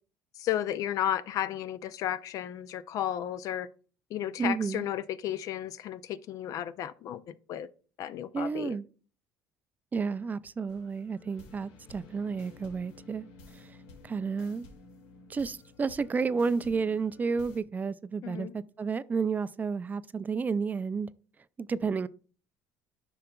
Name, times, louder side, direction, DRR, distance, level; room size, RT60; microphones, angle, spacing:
voice 1, 0.4-3.7 4.1-7.7 8.0-8.8 18.2-18.5, left 11 dB, 60° left, 0.5 m, -33 dB
voice 2, 4.4-4.9 8.3-8.9 9.9-13.3 13.5-13.8 14.0-14.7 15.3-21.1 21.6-22.1, right 5 dB, 25° right, 0.4 m, -31 dB
sound 1, 10.7-17.6, left 3 dB, 85° left, 1.5 m, -53 dB
10.0 x 5.7 x 2.3 m
supercardioid pair, 90°, 7 cm